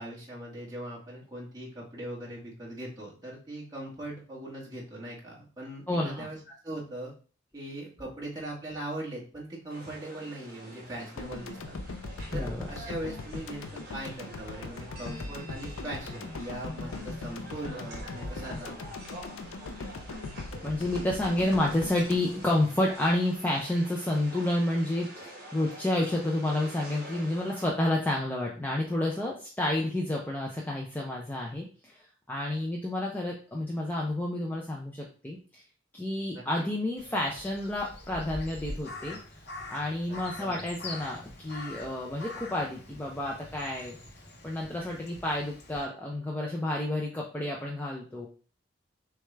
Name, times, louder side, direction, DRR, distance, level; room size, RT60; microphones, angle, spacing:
voice 1, 0.0-7.1 7.5-11.7 12.3-19.0 36.3-36.4 40.1-40.7, right 1 dB, 20° right, -5 dB, 1.5 m, -40 dB
voice 2, 5.9-6.3 12.3-12.7 20.6-35.6 35.9-39.2 39.7-44.0 44.4-48.3, left 1 dB, 10° left, -2 dB, 0.5 m, -30 dB
sound 1, 9.7-27.7, right 1 dB, 45° right, 1.5 m, -47 dB
sound 2, 11.2-23.4, left 3 dB, 80° left, 0.5 m, -40 dB
Crow, 37.0-45.8, left 2 dB, 50° left, 0.9 m, -44 dB
6.3 x 2.4 x 3.3 m, 0.39 s
head